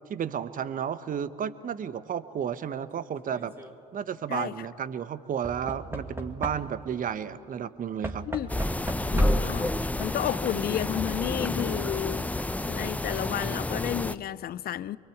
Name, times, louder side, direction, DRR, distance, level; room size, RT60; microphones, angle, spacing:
voice 1, 0.1-3.5 3.9-8.2, right 8 dB, 40° right, 1.2 m, -32 dB
Knock / Wood, 3.2-3.7 5.4-7.0 8.0-9.6 10.7-10.8 11.0-11.1, right 1 dB, 10° right, 2.1 m, -38 dB
voice 2, 4.3-4.7 8.3-8.5 9.1-9.7 10.0-15.0, left 12 dB, 45° left, 0.7 m, -32 dB
sound 1, 8.5-14.2, left 1 dB, 5° left, 0.8 m, -29 dB
24.5 x 23.5 x 8.6 m
hypercardioid pair, 65°, 21 cm